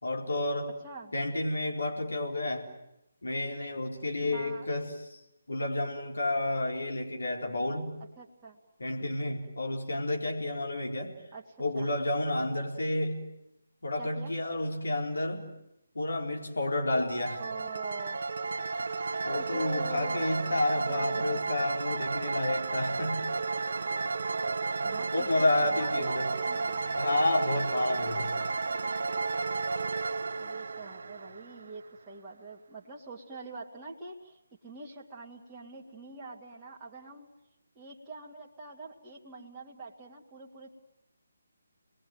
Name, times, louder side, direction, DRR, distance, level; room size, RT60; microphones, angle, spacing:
voice 1, 0.0-0.7 1.1-2.7 3.2-5.2 5.5-8.0 8.8-11.2 11.6-13.3 13.8-15.5 15.9-17.4 19.2-23.3 25.1-26.3 26.9-28.3, left 1 dB, 70° left, 0 dB, 4.3 m, -30 dB
voice 2, 4.3-4.7 8.2-8.6 11.3-11.9 14.0-14.3 17.4-18.2 19.3-20.3 20.9-21.4 24.8-27.0 30.4-37.3 37.8-40.7, right 4 dB, 15° right, -5 dB, 2.2 m, -45 dB
sound 1, 17.1-31.9, right 4 dB, 55° right, 1.1 m, -32 dB
29.0 x 21.0 x 9.2 m, 0.87 s
figure-of-eight pair, 145°, 0 cm